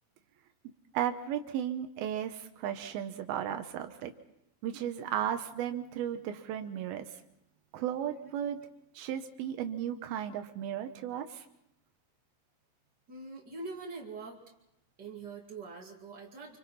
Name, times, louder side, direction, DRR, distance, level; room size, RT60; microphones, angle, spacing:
voice 1, 0.9-4.1 4.6-7.1 7.7-8.6 9.0-11.4, right 10 dB, 85° right, 7 dB, 2.2 m, -35 dB
voice 2, 13.1-14.4 15.0-16.6, right 3 dB, 35° right, -1 dB, 1.7 m, -43 dB
28.0 x 25.0 x 4.2 m, 0.82 s
omnidirectional pair, 5.8 m